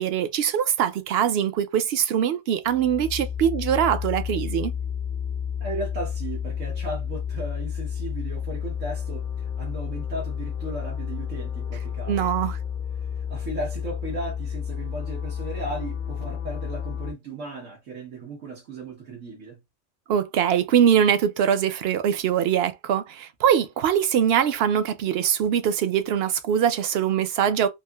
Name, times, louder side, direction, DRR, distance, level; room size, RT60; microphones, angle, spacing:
voice 1, 0.0-4.7 12.1-12.6 20.1-27.7, right 9 dB, 65° right, 0.7 m, -22 dB
sound 1, 2.7-17.1, left 8 dB, 60° left, 0.5 m, -31 dB
voice 2, 5.6-12.3 13.0-19.6, right 2 dB, 90° right, 1.3 m, -36 dB
3.0 x 2.7 x 2.2 m
omnidirectional pair, 1.3 m